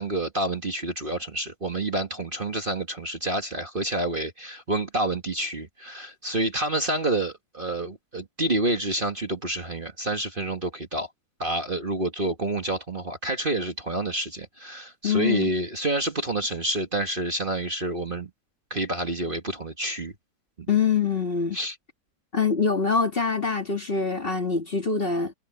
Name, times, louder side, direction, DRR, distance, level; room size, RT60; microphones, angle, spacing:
voice 1, 0.0-11.1 11.4-18.3 18.7-20.1 21.5-21.7, right 2 dB, 30° right, 1.7 m, -28 dB
voice 2, 15.0-15.5 20.7-21.6 22.3-25.3, left 5 dB, 35° left, 2.1 m, -24 dB
omnidirectional pair, 1.9 m